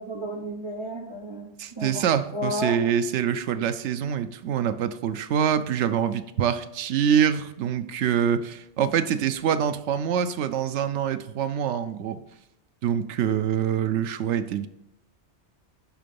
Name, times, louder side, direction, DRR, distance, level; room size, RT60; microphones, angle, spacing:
voice 1, 0.0-2.0 2.3-2.8, equal, 30° right, 0 dB, 0.8 m, -32 dB
voice 2, 1.6-12.2 12.8-14.7, right 8 dB, 80° right, 11 dB, 0.9 m, -25 dB
11.0 x 3.8 x 5.3 m, 0.85 s
omnidirectional pair, 1.2 m